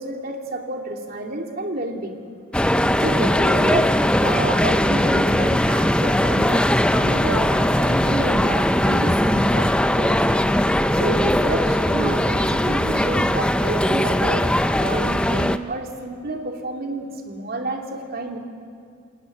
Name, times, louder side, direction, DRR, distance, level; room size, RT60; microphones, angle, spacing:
voice 1, 0.0-2.2 3.0-3.9 4.2-10.2 11.0-14.5 14.7-18.4, right 2 dB, 45° right, 2 dB, 2.8 m, -29 dB
sound 1, 2.5-15.6, left 1 dB, 5° left, 0.6 m, -19 dB
29.0 x 17.0 x 9.8 m, 2.2 s
head